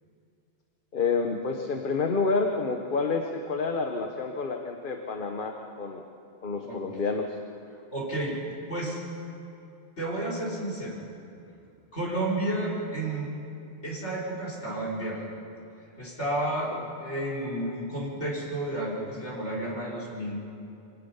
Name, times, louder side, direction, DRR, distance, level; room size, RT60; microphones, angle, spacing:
voice 1, 0.9-6.0 6.4-7.4, left 4 dB, 50° left, 3 dB, 1.2 m, -29 dB
voice 2, 7.9-8.4 8.7-9.0 10.0-11.0 11.9-13.3 13.8-15.2 16.0-20.4, right 1 dB, 85° left, -5 dB, 4.5 m, -31 dB
25.5 x 18.5 x 5.6 m, 2.7 s
omnidirectional pair, 1.1 m